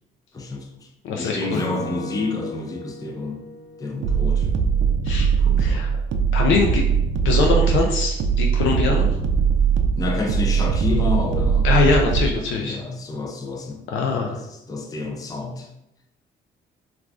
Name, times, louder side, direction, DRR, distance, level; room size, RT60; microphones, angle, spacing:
voice 1, 0.3-0.9 1.1-3.5 3.8-4.5 5.4-5.9 10.0-11.7 12.6-13.8 14.3-15.7, left 3 dB, 20° left, 3 dB, 0.4 m, -29 dB
voice 2, 1.0-1.6 5.0-5.3 5.6-5.9 6.3-6.8 7.2-9.1 11.6-12.8 13.9-14.4, left 4 dB, 80° left, 1 dB, 0.4 m, -22 dB
Acoustic guitar / Strum, 1.5-4.8, equal, 50° left, 0.9 m, -36 dB
sound 1, 4.0-12.4, right 7 dB, 70° right, 0.4 m, -20 dB
2.4 x 2.3 x 3.3 m, 0.84 s
cardioid pair, 90°, 20 cm